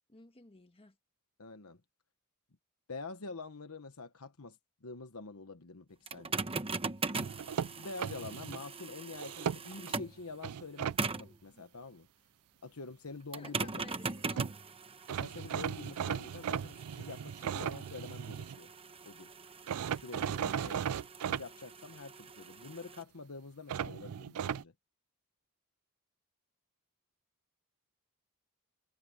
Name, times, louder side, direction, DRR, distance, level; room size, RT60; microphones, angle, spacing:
voice 1, 0.1-1.0 13.3-14.6 20.5-20.8, left 2 dB, 25° left, 1.6 m, -56 dB
voice 2, 1.4-1.8 2.9-6.5 7.7-12.1 12.6-13.8 15.1-18.7 19.0-19.3 20.0-21.0 21.3-24.7, left 3 dB, 70° left, 1.2 m, -46 dB
sound 1, 6.1-10.2 11.0-11.4 13.3-23.0, right 4 dB, 25° right, 1.0 m, -41 dB
sound 2, 7.2-8.6 9.1-9.9 10.4-11.0 14.1-14.2 14.4-14.5 15.1-18.6 19.7-21.4 23.7-24.6, right 8 dB, 80° right, 0.4 m, -36 dB
head